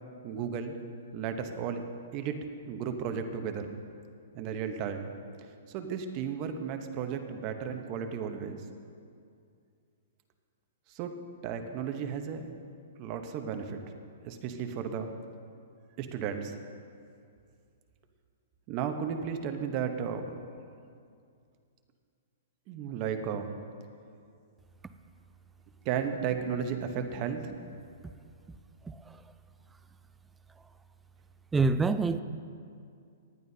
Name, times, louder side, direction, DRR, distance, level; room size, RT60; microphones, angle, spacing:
voice 1, 0.2-0.8 1.1-1.8 2.1-2.4 2.6-3.7 4.3-5.1 5.7-8.6 10.9-11.1 11.4-12.5 13.0-13.8 14.2-15.1 16.0-16.6 18.7-20.3 22.7-23.5 25.8-27.5, right 7 dB, 30° right, 6 dB, 0.9 m, -34 dB
voice 2, 28.8-29.2 31.5-32.2, right 4 dB, 10° right, 11 dB, 0.3 m, -27 dB
19.0 x 10.5 x 2.8 m, 2.4 s
hypercardioid pair, 155°, 0 cm